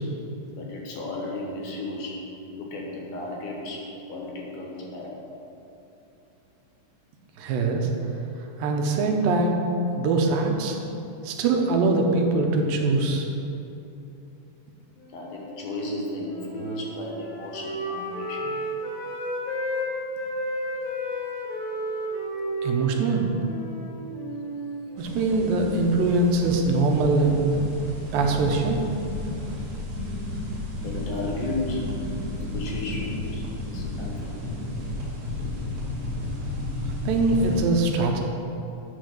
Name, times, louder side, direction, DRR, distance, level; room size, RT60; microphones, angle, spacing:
voice 1, 0.5-2.2 2.5-5.2 15.1-18.5 23.3-23.4 30.8-31.9 32.3-34.4, left 2 dB, 70° left, -1 dB, 2.6 m, -34 dB
voice 2, 7.4-7.9 8.6-9.7 10.0-10.8 11.2-13.3 22.6-23.3 25.0-27.5 28.1-28.8 37.1-38.2, right 3 dB, 85° right, 2 dB, 2.6 m, -22 dB
Wind instrument woodwind instrument, 15.0-19.9 20.1-25.5, equal, 45° left, 1.7 m, -33 dB
sound 1, 25.0-37.6, left 1 dB, 60° right, 3.4 m, -32 dB
10.0 x 4.3 x 6.4 m, 2.9 s
omnidirectional pair, 4.0 m